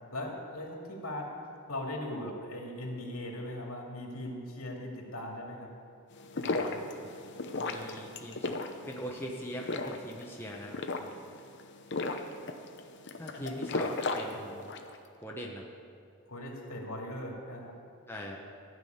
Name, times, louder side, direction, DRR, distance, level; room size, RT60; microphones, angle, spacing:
voice 1, 0.1-1.2 1.7-5.7 6.3-6.8 13.3-13.6 14.3-14.4 16.3-17.7, left 1 dB, 70° left, -1 dB, 2.6 m, -39 dB
sound 1, 6.1-14.9, left 3 dB, 50° left, 0.8 m, -36 dB
voice 2, 7.6-8.6 8.9-10.8 13.2-14.6 15.2-15.6 18.1-18.4, equal, 10° left, -2 dB, 1.0 m, -41 dB
14.5 x 6.2 x 9.3 m, 2.4 s
head